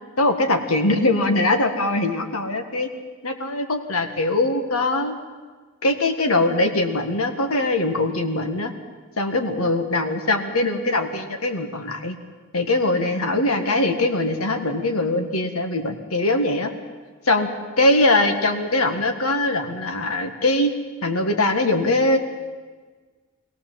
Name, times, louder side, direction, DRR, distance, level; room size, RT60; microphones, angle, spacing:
voice 1, 0.2-2.9 3.2-5.1 5.8-8.7 9.2-12.2 12.5-16.7 17.3-17.5 17.8-20.7 21.0-22.2, left 2 dB, 85° left, 5 dB, 1.8 m, -21 dB
22.5 x 17.0 x 7.6 m, 1.4 s
head